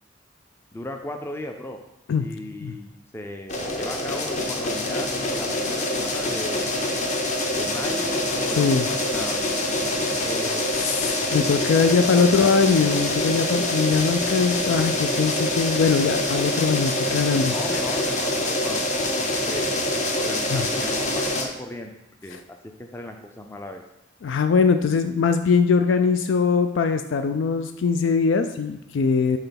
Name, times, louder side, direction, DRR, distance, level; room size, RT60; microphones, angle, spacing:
voice 1, 0.7-1.8 2.2-6.7 7.5-9.5 9.8-10.6 11.8-12.5 17.5-23.8, left 1 dB, 15° left, 4 dB, 0.4 m, -36 dB
sound 1, 3.5-21.5, left 1 dB, 40° left, 0.8 m, -25 dB
voice 2, 10.8-17.5 20.5-20.6 22.3-22.4 24.2-29.4, left 5 dB, 90° left, 8 dB, 0.4 m, -21 dB
5.6 x 3.9 x 5.8 m, 0.87 s
head